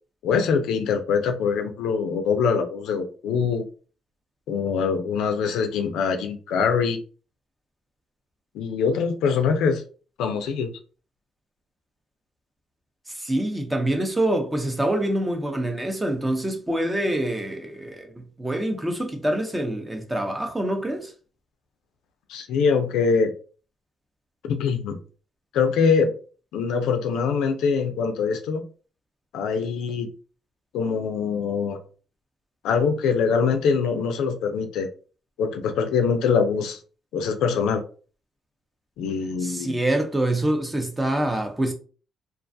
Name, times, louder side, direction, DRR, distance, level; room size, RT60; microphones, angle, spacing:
voice 1, 0.2-3.6 4.5-7.0 8.5-9.8 10.2-10.7 22.3-23.3 24.4-25.0 25.5-26.1 26.5-28.6 29.3-30.1 30.7-31.8 32.6-34.9 35.4-36.8 37.1-37.8 39.0-39.7, left 5 dB, 90° left, 0.4 m, -23 dB
voice 2, 13.1-21.1 39.4-41.7, right 1 dB, 15° right, 0.7 m, -26 dB
2.4 x 2.3 x 2.6 m
cardioid pair, 90°, 0 cm